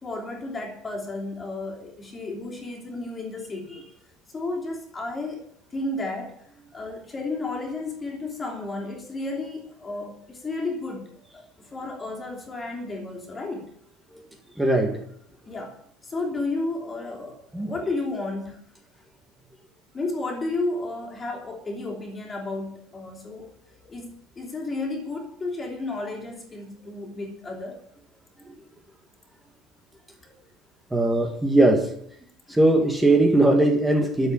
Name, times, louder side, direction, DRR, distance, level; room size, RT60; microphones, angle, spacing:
voice 1, 0.0-3.8 4.3-5.4 5.7-6.3 6.7-11.4 11.7-13.6 15.5-15.7 16.0-18.6 19.9-23.5 23.9-27.8 32.5-32.6, left 2 dB, 15° left, 1 dB, 2.9 m, -32 dB
voice 2, 14.6-15.0 17.5-17.7 30.9-31.9 32.5-34.3, right 2 dB, 5° right, 3 dB, 1.5 m, -20 dB
12.5 x 7.3 x 10.0 m, 0.67 s
cardioid pair, 180°, 0 cm